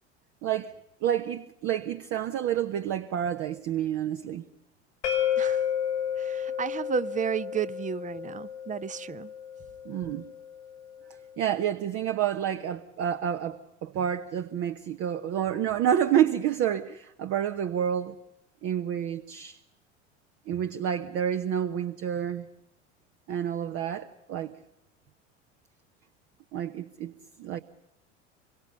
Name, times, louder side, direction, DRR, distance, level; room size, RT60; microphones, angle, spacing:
voice 1, 0.4-0.7 1.0-4.4 9.8-10.3 11.4-18.1 18.6-19.6 20.5-22.5 23.3-24.5 26.5-27.1 27.4-27.6, right 9 dB, 40° right, 1.2 m, -29 dB
sound 1, 5.0-10.8, left 9 dB, 70° left, 1.9 m, -32 dB
voice 2, 5.4-5.7 6.2-9.3, right 7 dB, 20° right, 0.8 m, -32 dB
26.0 x 23.5 x 6.8 m
figure-of-eight pair, 70°, 36 cm